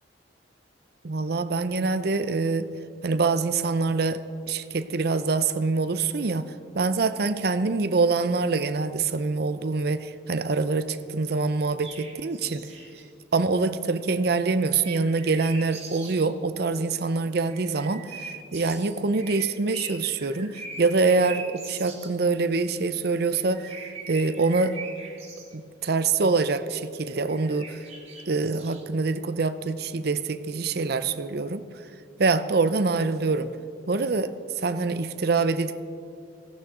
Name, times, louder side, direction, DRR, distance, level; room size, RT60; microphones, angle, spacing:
voice 1, 1.0-2.7 3.0-4.2 4.5-12.7 13.3-23.7 24.1-24.8 25.5-27.8 28.3-31.6 32.2-33.5 33.9-35.8, right 4 dB, 55° right, 11 dB, 0.6 m, -25 dB
sound 1, 11.8-13.0 14.6-16.3 17.5-22.1 23.1-25.5 27.0-28.8, right 4 dB, 35° right, 1.9 m, -42 dB
17.0 x 15.0 x 3.8 m, 2.4 s
head